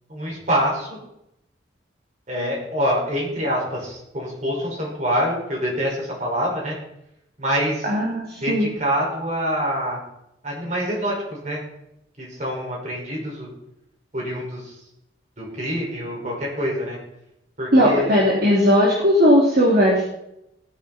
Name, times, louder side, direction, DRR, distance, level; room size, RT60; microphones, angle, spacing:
voice 1, 0.1-0.9 2.3-6.8 7.4-7.9 8.4-10.0 10.4-11.6 12.2-13.5 14.1-14.8 15.4-17.0 17.6-18.1, equal, 40° right, -3 dB, 5.7 m, -25 dB
voice 2, 7.8-8.7 17.7-20.0, equal, 60° right, -4 dB, 2.9 m, -17 dB
17.5 x 10.0 x 4.4 m, 0.82 s
head